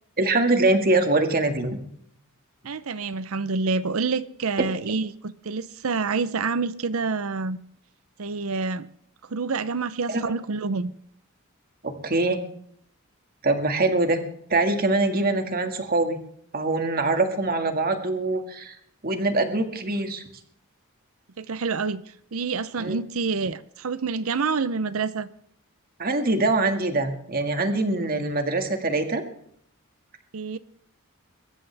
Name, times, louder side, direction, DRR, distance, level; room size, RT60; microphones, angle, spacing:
voice 1, 0.2-1.8 10.1-10.2 11.8-12.4 13.4-14.2 14.5-16.2 16.5-18.8 19.0-20.2 22.8-23.0 26.0-29.2, right 2 dB, 45° right, 1.9 m, -23 dB
voice 2, 2.6-7.6 8.2-8.9 9.2-10.9 21.4-25.3 30.3-30.6, right 4 dB, 75° right, 0.6 m, -27 dB
23.5 x 13.5 x 3.4 m
head